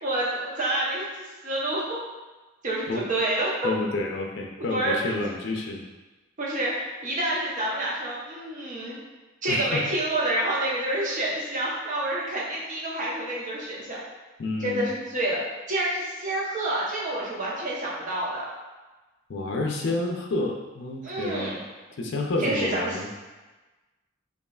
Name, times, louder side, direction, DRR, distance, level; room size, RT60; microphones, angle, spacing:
voice 1, 0.0-1.0 1.4-2.0 2.6-3.7 4.7-4.9 6.4-9.0 9.4-14.0 14.6-15.4 15.7-18.5 21.0-21.7 22.4-23.0, right 1 dB, 40° right, -5 dB, 0.9 m, -28 dB
voice 2, 3.6-5.8 9.5-9.8 14.4-14.9 19.3-21.5 22.0-23.1, left 2 dB, 60° left, 0 dB, 0.5 m, -29 dB
5.4 x 2.4 x 2.3 m, 1.2 s
head